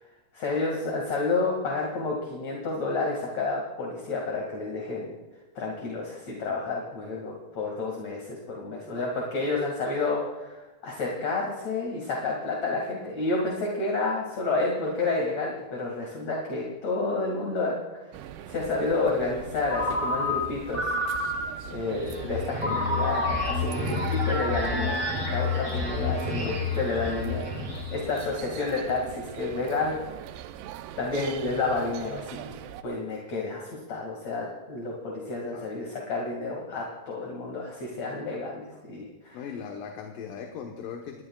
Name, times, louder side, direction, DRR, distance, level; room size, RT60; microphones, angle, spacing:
voice 1, 0.3-5.1 5.5-20.9 21.6-25.0 25.3-27.5 27.9-30.1 31.0-32.6 32.8-39.4, left 3 dB, 50° left, -1 dB, 3.0 m, -30 dB
sound 1, 18.1-32.8, right 11 dB, 85° right, 2.7 m, -42 dB
Ringtone, 19.7-21.8 22.6-25.9, left 1 dB, 20° right, 0.8 m, -31 dB
sound 2, 21.8-28.4, left 4 dB, 40° right, 5.3 m, -31 dB
voice 2, 26.4-26.8 35.5-35.7 39.3-41.2, left 7 dB, 65° left, 2 dB, 2.5 m, -39 dB
28.5 x 19.5 x 2.4 m, 1.1 s
omnidirectional pair, 4.5 m